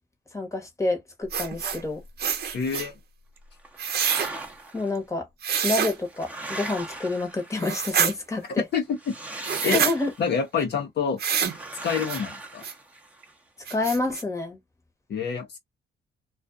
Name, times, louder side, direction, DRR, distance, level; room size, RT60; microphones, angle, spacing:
voice 1, 0.3-2.0 4.7-5.3 5.6-8.6 9.6-10.1 13.7-14.6, left 2 dB, 15° left, 1.1 m, -28 dB
sound 1, 1.3-1.8 2.2-2.9 3.8-4.3 5.4-5.9 7.6-8.1 9.4-9.9 11.2-11.6 12.1-12.2 12.6-12.7 13.2-13.3 13.7-14.2, right 7 dB, 55° right, 0.7 m, -26 dB
voice 2, 2.5-2.9 8.7-9.8 10.2-11.2 11.8-12.6 15.1-15.6, left 6 dB, 60° left, 0.9 m, -27 dB
sound 2, 3.6-4.9 5.7-7.9 8.9-10.4 11.4-13.3, right 2 dB, 5° right, 0.8 m, -39 dB
2.4 x 2.4 x 2.4 m
cardioid pair, 90°, 20 cm